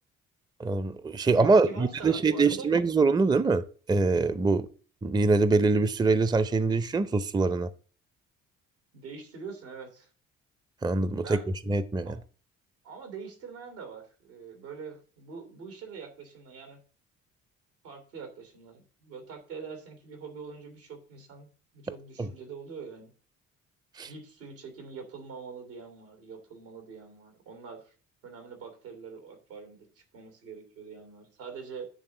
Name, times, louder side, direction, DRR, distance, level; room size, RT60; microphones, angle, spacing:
voice 1, 0.6-4.7 5.0-7.7 10.8-11.4 11.7-12.2 22.2-22.3 24.0-24.1, right 3 dB, 10° right, 0.6 m, -24 dB
voice 2, 1.3-2.7 8.9-10.1 11.1-11.5 12.0-12.2 12.8-16.8 17.8-21.5 21.7-23.1 24.1-27.9 28.2-31.9, right 5 dB, 80° right, 2.5 m, -44 dB
9.5 x 3.5 x 6.6 m
hypercardioid pair, 55°, 37 cm